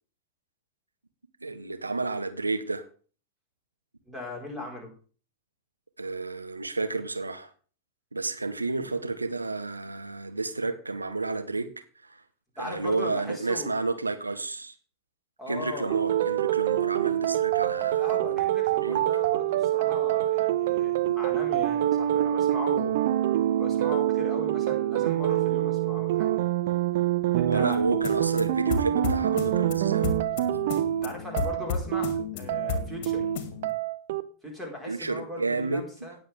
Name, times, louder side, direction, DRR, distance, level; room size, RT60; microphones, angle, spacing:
voice 1, 1.4-2.8 6.0-7.5 8.1-12.2 12.6-14.7 15.5-18.4 18.8-19.0 21.1-21.2 27.5-30.1 34.9-35.9, right 3 dB, 80° right, 0.9 m, -31 dB
voice 2, 4.1-4.9 12.6-13.8 15.4-16.0 18.0-23.0 23.6-26.3 27.3-27.8 31.0-33.3 34.4-36.2, left 2 dB, 5° right, 4.8 m, -39 dB
sound 1, 15.9-34.2, right 12 dB, 55° right, 0.7 m, -26 dB
sound 2, 27.7-33.7, left 5 dB, 45° left, 2.0 m, -34 dB
17.5 x 7.0 x 3.6 m
figure-of-eight pair, 90°, 0 cm